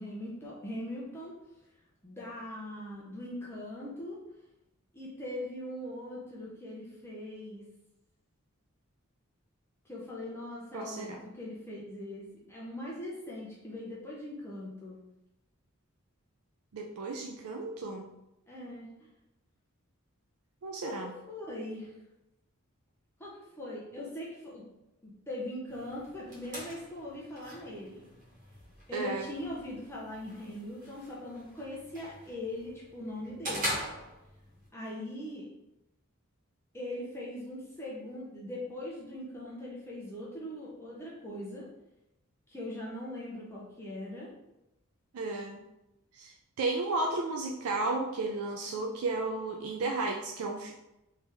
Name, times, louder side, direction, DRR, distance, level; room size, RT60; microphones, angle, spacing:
voice 1, 0.0-1.4 2.0-4.2 4.9-7.6 9.8-15.0 18.5-18.9 20.8-21.9 23.2-24.6 25.0-28.0 28.9-33.8 34.7-35.5 36.7-41.7 42.5-44.3, left 1 dB, 10° left, -6 dB, 0.6 m, -41 dB
voice 2, 10.7-11.2 16.7-18.1 20.6-21.1 28.9-29.3 45.1-45.6 46.1-50.7, right 3 dB, 90° right, 2 dB, 0.4 m, -33 dB
sound 1, 25.7-34.7, equal, 40° right, 1.4 m, -42 dB
3.4 x 2.8 x 3.3 m, 0.93 s
head